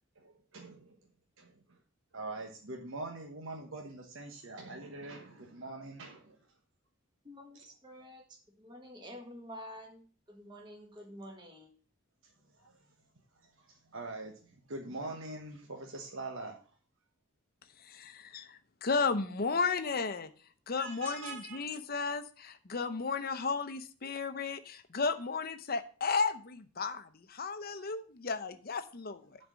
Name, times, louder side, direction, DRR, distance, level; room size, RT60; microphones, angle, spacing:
voice 1, 0.2-1.0 1.4-1.8 2.1-6.4 12.2-12.8 13.4-16.6 20.8-21.6, right 2 dB, 70° right, 1.1 m, -44 dB
voice 2, 7.2-11.7, equal, 20° right, 1.8 m, -49 dB
voice 3, 17.8-20.3 20.7-29.3, left 4 dB, 45° left, 0.8 m, -34 dB
10.5 x 4.3 x 6.2 m
head